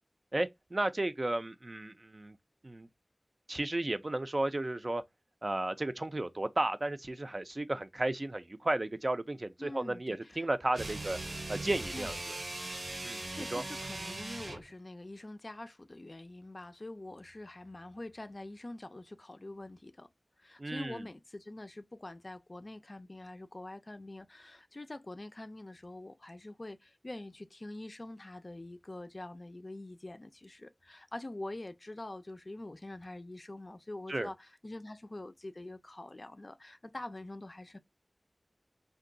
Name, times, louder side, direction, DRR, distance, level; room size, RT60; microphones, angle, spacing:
voice 1, 0.3-2.4 2.6-2.9 3.5-5.0 5.4-11.2 11.5-12.2 13.0-13.6 20.6-21.0 34.1-34.3, right 2 dB, 50° right, 0.4 m, -33 dB
voice 2, 9.6-10.5 11.9-12.2 13.3-20.1 20.4-37.8, left 2 dB, 50° left, 0.4 m, -45 dB
sound 1, 10.7-14.7, right 2 dB, 85° right, 0.8 m, -40 dB
2.6 x 2.2 x 3.8 m
wide cardioid pair, 60°, 0 cm